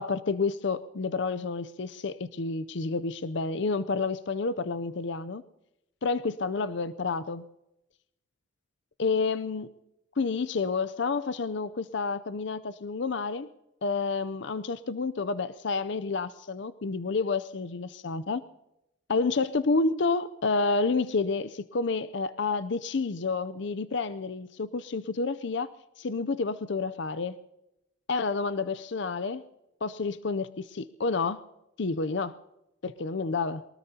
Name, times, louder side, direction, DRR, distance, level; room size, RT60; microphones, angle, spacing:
voice 1, 0.0-5.4 6.0-7.4 9.0-9.7 10.2-13.5 13.8-18.4 19.1-25.7 26.0-27.4 28.1-29.4 29.8-31.4 31.8-32.4 32.8-33.7, left 4 dB, 60° left, 14 dB, 0.5 m, -29 dB
23.0 x 20.0 x 2.8 m, 0.87 s
head